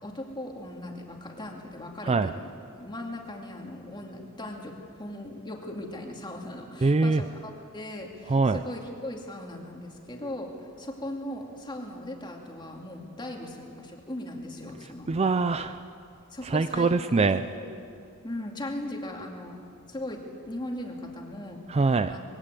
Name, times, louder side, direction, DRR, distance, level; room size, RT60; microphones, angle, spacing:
voice 1, 0.0-15.1 16.3-17.7 18.2-19.6 19.9-21.6 22.1-22.2, left 1 dB, 20° left, 1 dB, 2.4 m, -38 dB
voice 2, 2.0-2.3 6.8-7.2 8.2-8.6 14.8-15.8 16.4-17.4 21.7-22.2, right 3 dB, 30° right, 11 dB, 0.4 m, -24 dB
21.0 x 16.5 x 8.2 m, 2.5 s
head